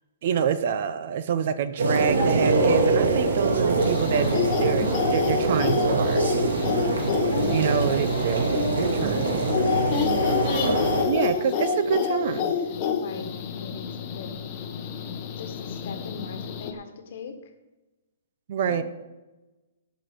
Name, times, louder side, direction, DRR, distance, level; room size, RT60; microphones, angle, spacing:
voice 1, 0.2-6.3 7.5-9.6 11.1-12.5 18.5-18.8, right 8 dB, 35° right, 12 dB, 0.6 m, -27 dB
sound 1, 1.8-11.0, right 3 dB, 70° right, 2.4 m, -24 dB
sound 2, 3.8-16.7, left 7 dB, 25° left, 0.9 m, -28 dB
voice 2, 6.7-7.9 8.5-13.9 14.1-14.3 15.4-17.4 18.7-18.8, left 5 dB, 40° left, 7 dB, 1.4 m, -36 dB
17.5 x 6.1 x 5.2 m, 1.1 s
hypercardioid pair, 175°, 0 cm